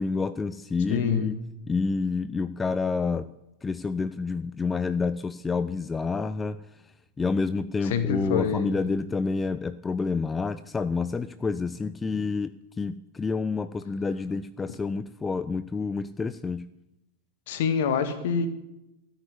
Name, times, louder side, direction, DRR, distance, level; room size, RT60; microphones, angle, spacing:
voice 1, 0.0-1.3 1.7-3.3 3.6-6.6 7.2-12.5 12.8-16.6, left 4 dB, 15° left, 14 dB, 0.5 m, -28 dB
voice 2, 0.9-1.3 7.8-8.9 17.5-18.5, left 7 dB, 55° left, 10 dB, 1.8 m, -26 dB
14.0 x 9.0 x 9.8 m, 0.90 s
figure-of-eight pair, 90°, 0 cm